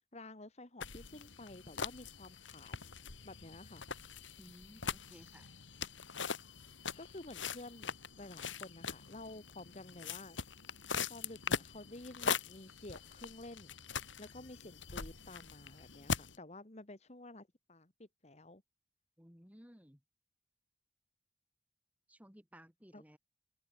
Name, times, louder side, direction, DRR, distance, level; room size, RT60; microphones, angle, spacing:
voice 1, 0.1-2.7 3.2-3.8 7.0-10.4 11.1-13.8 14.2-18.6 22.9-23.0, left 2 dB, 35° left, 1.7 m, -51 dB
sound 1, 0.8-16.4, left 6 dB, 90° left, 2.4 m, -42 dB
voice 2, 4.4-5.5 19.2-20.0 22.1-23.2, equal, 10° right, 5.0 m, -58 dB
head